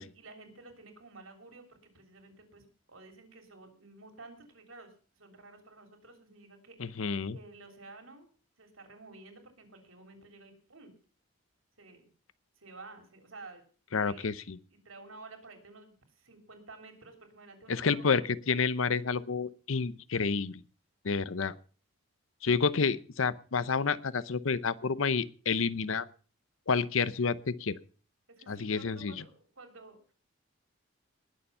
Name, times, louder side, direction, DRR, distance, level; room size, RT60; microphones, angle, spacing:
voice 1, 0.0-7.0 7.3-8.3 8.6-10.9 11.8-12.1 12.6-13.6 14.0-14.3 14.7-18.2 28.4-30.0, right 3 dB, 80° right, 5 dB, 3.3 m, -52 dB
voice 2, 6.8-7.4 13.9-14.6 17.7-20.6 21.0-21.5 22.4-26.1 26.7-27.8 28.5-29.1, left 5 dB, 75° left, 17 dB, 0.7 m, -29 dB
19.5 x 7.1 x 5.5 m, 0.39 s
head